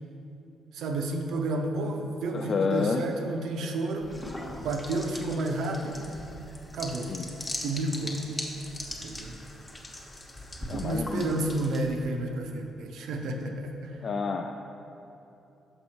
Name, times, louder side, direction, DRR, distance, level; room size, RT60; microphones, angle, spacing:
voice 1, 0.7-4.3 4.6-6.1 6.7-7.2 7.6-8.2 8.9-9.3 10.6-14.0, right 2 dB, 75° right, 3 dB, 0.7 m, -31 dB
voice 2, 2.3-3.0 7.1-7.3 10.7-11.4 13.2-13.5 14.0-14.7, left 5 dB, 45° left, 3 dB, 0.3 m, -30 dB
sound 1, 4.0-12.1, left 1 dB, 20° left, 0.9 m, -40 dB
6.6 x 5.4 x 4.3 m, 2.9 s
cardioid pair, 90°, 0 cm